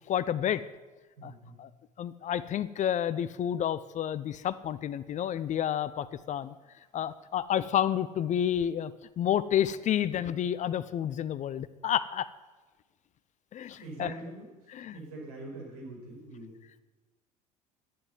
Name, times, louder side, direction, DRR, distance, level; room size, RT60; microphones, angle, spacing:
voice 1, 0.1-0.6 1.2-1.3 1.6-1.7 2.0-6.5 6.9-8.9 9.2-12.3 13.5-14.1 14.7-15.0, left 10 dB, 40° left, 16 dB, 0.6 m, -30 dB
voice 2, 1.2-1.6 13.8-14.5 14.9-16.5, right 2 dB, 70° right, -1 dB, 5.2 m, -43 dB
11.0 x 9.6 x 9.1 m, 1.2 s
figure-of-eight pair, 65°, 20 cm